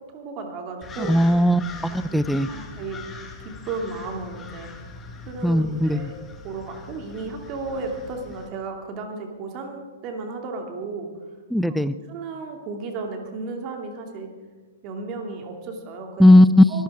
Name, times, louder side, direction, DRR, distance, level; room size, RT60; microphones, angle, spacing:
voice 1, 0.1-1.1 1.9-2.2 2.5-3.0 3.4-4.7 5.3-6.1 6.4-11.1 11.7-11.8 12.1-14.3 14.8-16.3 16.7-16.8, right 3 dB, 35° right, 3 dB, 2.7 m, -34 dB
sound 1, 0.8-8.5, left 3 dB, 20° left, 1.9 m, -41 dB
voice 2, 1.1-2.5 5.4-6.1 11.5-11.9 16.2-16.7, left 1 dB, ahead, 14 dB, 0.5 m, -17 dB
23.5 x 13.5 x 3.7 m, 1.3 s
figure-of-eight pair, 110°, 0 cm